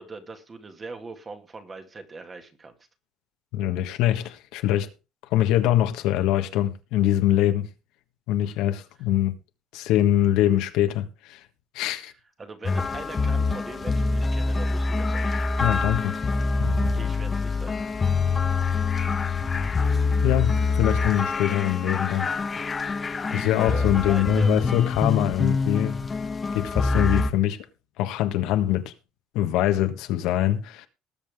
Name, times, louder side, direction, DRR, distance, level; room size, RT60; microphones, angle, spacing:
voice 1, 0.0-2.7 11.9-12.0 12.4-15.3 17.0-17.8 23.5-24.5, right 3 dB, 25° right, 1.9 m, -40 dB
voice 2, 3.5-4.9 5.3-7.7 8.3-9.3 9.7-11.4 11.7-12.1 15.6-16.2 16.6-16.9 18.6-18.7 20.2-22.3 23.3-26.1 26.5-27.6 28.0-28.9 29.3-30.9, left 13 dB, 75° left, 1.5 m, -23 dB
sound 1, 12.6-27.3, left 4 dB, 20° left, 0.9 m, -25 dB
19.5 x 7.4 x 3.6 m
cardioid pair, 145°, 0 cm